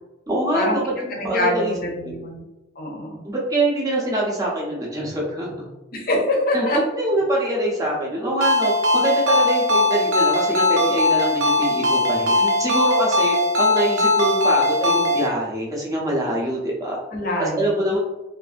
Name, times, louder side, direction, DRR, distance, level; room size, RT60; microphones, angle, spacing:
voice 1, 0.3-1.7 2.0-2.1 3.2-5.7 6.5-6.7 7.0-17.0 17.4-18.0, right 1 dB, 15° right, -4 dB, 0.6 m, -24 dB
voice 2, 1.2-2.4 2.8-3.2 5.9-6.8 17.1-18.0, left 1 dB, 45° left, 0 dB, 0.6 m, -24 dB
Ringtone, 8.4-15.3, left 1 dB, 65° right, 0.5 m, -19 dB
2.6 x 2.4 x 2.4 m, 1.0 s
head